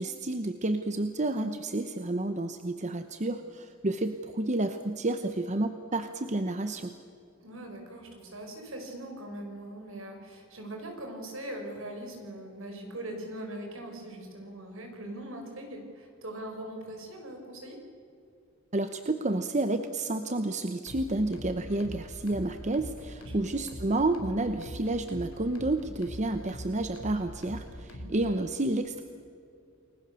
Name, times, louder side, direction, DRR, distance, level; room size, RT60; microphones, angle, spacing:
voice 1, 0.0-6.9 18.7-29.0, right 2 dB, 35° right, 8 dB, 1.0 m, -30 dB
voice 2, 7.4-17.8 23.2-23.6 27.9-28.1, right 1 dB, 65° right, 3 dB, 5.8 m, -41 dB
sound 1, 20.9-28.4, equal, 85° left, 3.3 m, -43 dB
29.5 x 21.0 x 7.0 m, 2.5 s
head